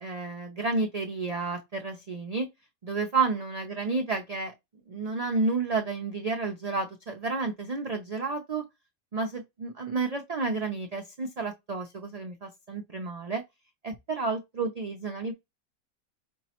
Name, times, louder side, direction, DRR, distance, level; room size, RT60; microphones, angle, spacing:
voice 1, 0.0-2.5 2.8-4.5 4.9-8.6 9.1-13.4 13.8-15.3, right 3 dB, 80° right, 0.3 m, -31 dB
5.4 x 2.0 x 2.8 m
omnidirectional pair, 1.4 m